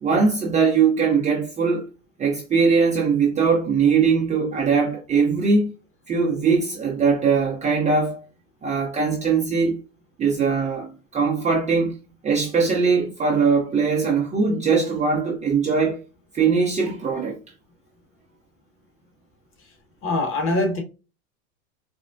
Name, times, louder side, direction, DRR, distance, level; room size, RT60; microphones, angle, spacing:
voice 1, 0.0-1.9 2.2-5.7 6.1-8.2 8.6-9.8 10.2-11.9 12.2-16.0 16.3-17.4, right 5 dB, 15° right, 0.6 m, -21 dB
voice 2, 20.0-20.8, left 2 dB, 30° left, 1.3 m, -23 dB
4.1 x 2.0 x 2.5 m
hypercardioid pair, 110°, 42 cm